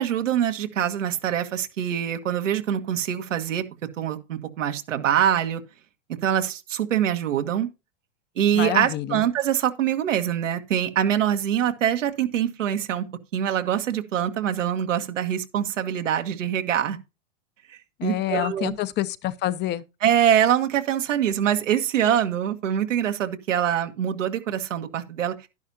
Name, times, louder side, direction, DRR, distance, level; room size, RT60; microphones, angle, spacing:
voice 1, 0.0-3.6 4.0-5.6 6.2-7.7 8.3-13.0 13.3-17.0 17.7-18.7 20.0-25.3, right 10 dB, 90° right, 1.7 m, -24 dB
voice 2, 8.5-9.2 18.0-19.8, left 14 dB, 30° left, 0.7 m, -27 dB
11.5 x 10.5 x 2.8 m
hypercardioid pair, 125°, 37 cm